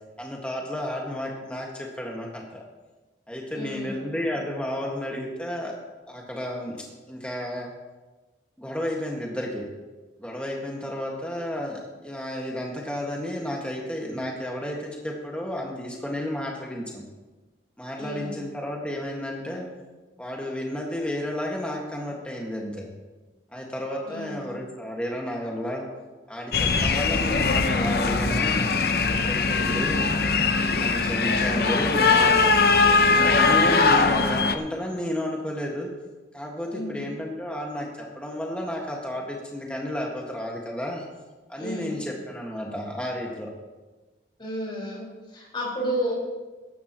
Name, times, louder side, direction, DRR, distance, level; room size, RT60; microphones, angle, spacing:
voice 1, 0.2-2.6 3.3-5.7 6.1-7.7 8.6-9.7 10.2-17.0 17.8-19.6 20.2-22.9 23.5-25.8 26.3-28.7 29.1-30.1 30.7-32.5 33.1-35.9 36.3-41.0 41.5-43.5, left 1 dB, 5° left, -1 dB, 1.7 m, -32 dB
voice 2, 3.5-4.4 18.0-18.5 24.0-24.5 29.7-30.0 31.4-32.0 32.8-33.1 36.7-37.0 41.6-42.0 44.4-46.2, equal, 25° left, -5 dB, 4.8 m, -33 dB
sound 1, 26.5-34.5, left 4 dB, 55° left, 0.7 m, -21 dB
17.0 x 13.5 x 3.0 m, 1.2 s
head